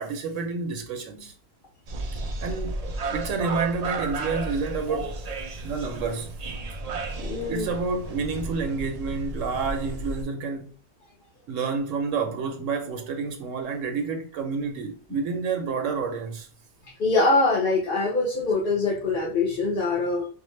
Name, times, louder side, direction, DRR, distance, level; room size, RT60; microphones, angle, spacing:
voice 1, 0.0-1.3 2.4-2.8 3.1-5.2 5.6-6.3 7.5-10.7 11.5-16.5, right 4 dB, 80° right, 1.0 m, -29 dB
sound 1, 1.9-10.2, right 3 dB, 60° right, 0.4 m, -33 dB
voice 2, 7.2-7.7 16.8-20.3, left 3 dB, 50° left, 1.0 m, -24 dB
5.2 x 2.1 x 3.1 m
omnidirectional pair, 1.3 m